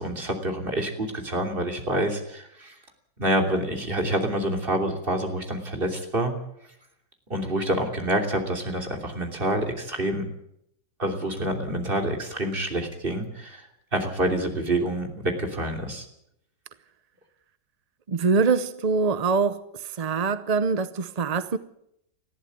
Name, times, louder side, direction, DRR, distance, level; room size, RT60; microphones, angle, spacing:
voice 1, 0.0-2.7 3.2-6.3 7.3-10.3 11.0-16.1, right 1 dB, 30° right, 3.3 m, -27 dB
voice 2, 18.1-19.6 20.0-21.6, right 4 dB, 50° right, 0.4 m, -23 dB
20.0 x 14.5 x 9.3 m
omnidirectional pair, 1.9 m